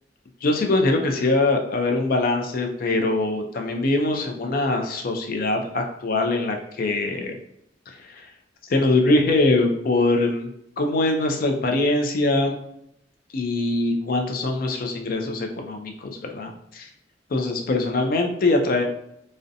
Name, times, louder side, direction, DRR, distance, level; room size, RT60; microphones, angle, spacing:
voice 1, 0.4-7.4 7.9-8.3 8.7-12.5 13.3-16.9 17.3-18.8, left 2 dB, 55° left, 3 dB, 0.4 m, -23 dB
2.6 x 2.1 x 2.5 m, 0.74 s
head